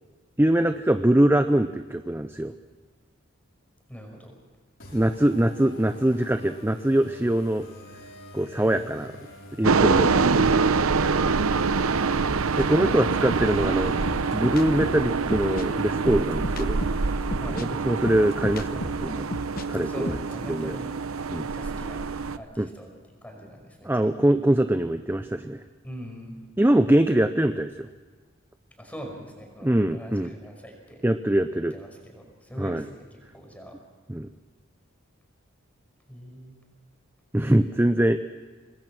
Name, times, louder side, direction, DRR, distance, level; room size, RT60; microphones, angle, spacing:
voice 1, 0.4-2.5 4.9-7.7 8.3-9.1 9.6-10.5 12.6-13.9 14.3-16.8 17.5-19.3 19.7-20.2 20.5-20.8 21.3-21.4 22.6-22.7 23.8-25.6 26.6-27.9 29.6-30.3 31.0-31.7 32.6-32.8 34.1-34.3 37.3-38.2, right 1 dB, 10° right, 9 dB, 0.6 m, -23 dB
voice 2, 3.9-4.4 8.6-8.9 17.4-17.7 19.7-22.1 22.4-22.9 23.2-24.1 25.8-26.4 28.8-31.0 31.7-33.8 36.1-36.5, equal, 5° left, 2 dB, 5.3 m, -42 dB
sound 1, 4.8-17.2, left 1 dB, 65° left, 5.7 m, -47 dB
sound 2, 9.6-22.4, right 4 dB, 90° right, 0.8 m, -25 dB
sound 3, 12.6-19.7 19.9-20.5, left 1 dB, 45° left, 1.1 m, -35 dB
26.0 x 20.0 x 6.1 m, 1.4 s
head